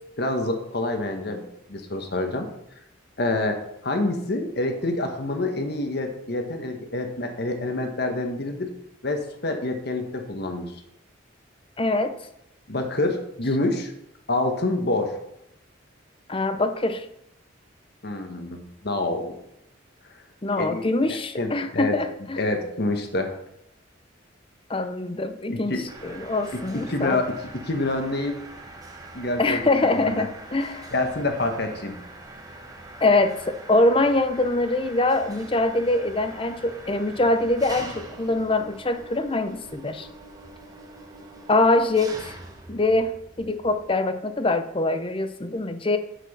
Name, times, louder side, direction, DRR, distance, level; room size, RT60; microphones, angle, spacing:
voice 1, 0.2-2.5 3.2-3.6 3.8-8.7 9.0-10.7 12.7-13.9 14.3-15.2 18.0-19.4 20.6-20.8 21.4-22.0 22.4-23.4 25.5-25.9 26.7-27.4 27.7-28.4 29.1-30.3 30.9-32.0, left 2 dB, 55° left, 5 dB, 1.3 m, -27 dB
voice 2, 11.8-12.1 16.3-17.1 20.4-22.4 24.7-27.2 29.4-30.9 33.0-40.1 41.5-42.4 42.7-43.1 43.4-46.0, left 2 dB, 25° left, 10 dB, 0.7 m, -23 dB
Mechanisms, 25.9-43.9, right 2 dB, 20° right, 1.1 m, -43 dB
8.2 x 6.1 x 6.1 m, 0.78 s
head